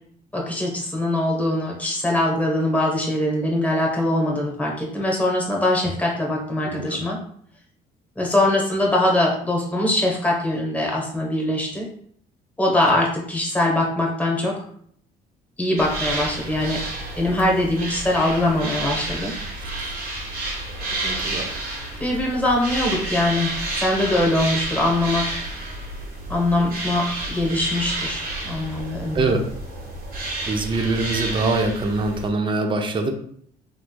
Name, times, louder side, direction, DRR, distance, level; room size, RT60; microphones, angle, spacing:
voice 1, 0.3-7.2 8.2-11.9 12.6-14.6 15.6-19.3 22.0-23.5 23.8-25.4 26.3-29.3, left 1 dB, 10° left, -2 dB, 1.0 m, -22 dB
voice 2, 6.6-7.0 19.8-19.9 21.0-21.6 29.1-29.5 30.5-33.1, right 3 dB, 30° right, 4 dB, 0.5 m, -24 dB
sound 1, 15.8-32.3, right 2 dB, 60° right, 1.2 m, -30 dB
3.2 x 3.1 x 2.2 m, 0.63 s
cardioid pair, 110°, 17 cm